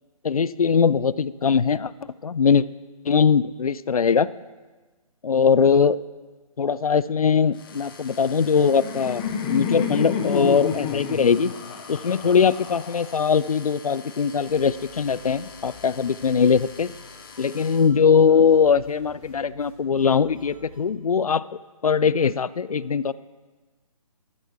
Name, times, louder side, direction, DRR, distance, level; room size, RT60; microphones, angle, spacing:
voice 1, 0.2-1.9 2.2-2.7 3.1-4.3 5.2-6.0 6.6-11.5 11.9-16.9 17.4-21.4 21.8-23.1, left 6 dB, 65° left, 19 dB, 0.4 m, -21 dB
sound 1, 7.5-17.9, left 5 dB, 35° left, 1.3 m, -45 dB
Laughter, 8.3-13.3, left 6 dB, 15° left, 0.6 m, -29 dB
sound 2, 14.4-20.8, left 1 dB, 5° right, 3.6 m, -49 dB
14.0 x 12.5 x 3.4 m, 1.3 s
figure-of-eight pair, 140°, 20 cm